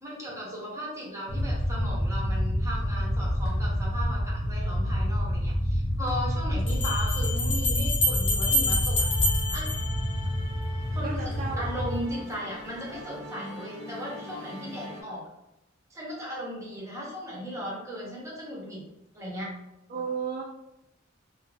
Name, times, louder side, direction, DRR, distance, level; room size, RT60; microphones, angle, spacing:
voice 1, 0.0-9.1 9.5-9.7 10.9-15.3 15.9-18.8 19.1-19.5, equal, 15° right, -5 dB, 0.7 m, -37 dB
sound 1, 1.3-12.0, equal, 65° left, 0.8 m, -28 dB
sound 2, 5.0-5.1 6.7-10.6, left 1 dB, 30° left, 0.7 m, -28 dB
Musical instrument, 9.0-15.0, left 1 dB, 85° right, 0.8 m, -43 dB
voice 2, 11.0-11.6 19.9-20.4, right 5 dB, 45° right, -3 dB, 0.3 m, -33 dB
2.3 x 2.1 x 3.1 m, 0.90 s
head